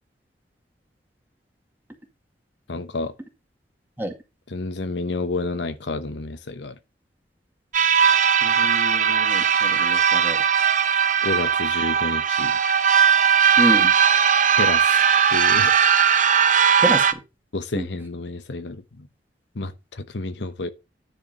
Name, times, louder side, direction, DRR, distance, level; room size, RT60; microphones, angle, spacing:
voice 1, 2.7-3.1 4.5-6.8 11.2-12.8 14.6-15.0 15.3-15.7 17.5-19.1 19.5-20.7, left 3 dB, 85° left, 1.0 m, -30 dB
sound 1, 7.7-17.1, right 7 dB, 45° right, 0.8 m, -18 dB
voice 2, 8.4-10.4 13.6-13.9 16.8-17.2 17.7-17.9, equal, 10° right, 2.1 m, -28 dB
10.0 x 4.6 x 5.6 m
head